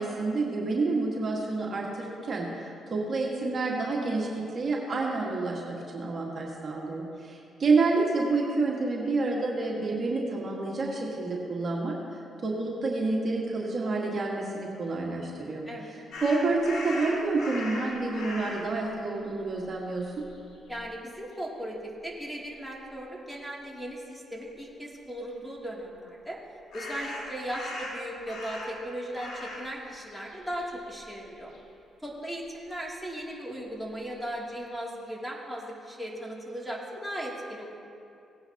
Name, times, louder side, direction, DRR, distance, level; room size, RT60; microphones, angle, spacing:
voice 1, 0.0-20.2, right 3 dB, 50° right, -2 dB, 1.7 m, -29 dB
sound 1, 16.1-18.7 19.5-19.6 20.0-20.9 26.7-28.9 29.1-29.7 30.0-31.6, left 2 dB, 65° left, 2.8 m, -39 dB
voice 2, 20.7-21.8 22.0-26.4 26.7-31.5 32.0-37.7, equal, ahead, -3 dB, 2.8 m, -37 dB
18.0 x 9.6 x 2.9 m, 2.6 s
hypercardioid pair, 50°, 0 cm